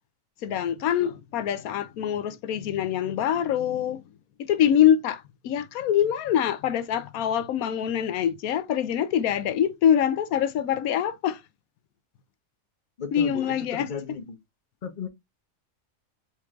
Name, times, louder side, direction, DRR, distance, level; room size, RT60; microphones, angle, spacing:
voice 1, 0.4-4.0 4.4-11.4 13.1-13.9, left 9 dB, 90° left, 1.1 m, -24 dB
voice 2, 13.0-14.4 14.8-15.1, left 5 dB, 40° left, 0.9 m, -35 dB
4.5 x 4.3 x 2.4 m
omnidirectional pair, 1.5 m